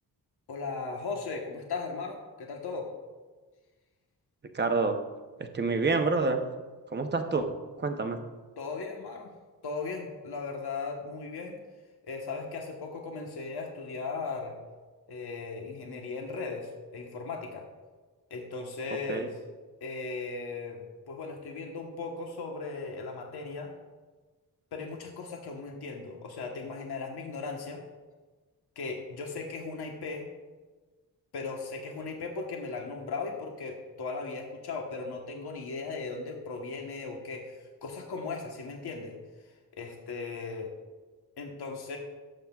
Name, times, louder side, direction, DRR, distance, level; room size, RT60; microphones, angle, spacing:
voice 1, 0.5-2.9 8.6-9.3 9.6-11.6 12.0-14.6 15.1-17.7 18.3-19.3 19.8-23.7 24.7-27.8 28.7-30.3 31.3-39.2 39.7-40.7 41.4-42.0, left 4 dB, 85° left, 1 dB, 1.3 m, -37 dB
voice 2, 4.5-5.0 5.4-6.4 6.9-7.5 7.8-8.2 19.1-19.3, right 3 dB, 30° right, 6 dB, 0.8 m, -27 dB
17.0 x 7.8 x 2.4 m, 1.3 s
wide cardioid pair, 165°, 38 cm